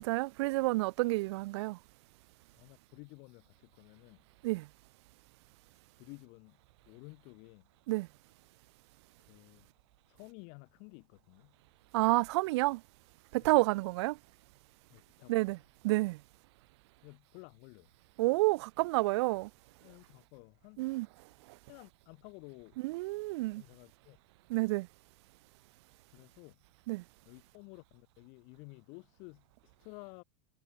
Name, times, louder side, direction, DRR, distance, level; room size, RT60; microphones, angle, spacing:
voice 1, 0.0-1.8 4.4-4.7 7.9-8.1 11.9-12.8 13.3-14.2 15.3-15.6 15.8-16.2 18.2-19.5 20.8-21.1 22.8-23.6 24.5-24.9 26.9-27.0, right 21 dB, 45° right, 1.0 m, -29 dB
voice 2, 2.2-4.2 6.0-6.6 6.9-7.7 9.2-9.7 10.1-11.6 13.4-13.7 14.9-15.5 17.0-17.9 19.8-21.0 21.6-22.8 23.5-24.2 26.1-26.6 27.3-30.2, left 37 dB, 40° left, 7.4 m, -53 dB
supercardioid pair, 180°, 19 cm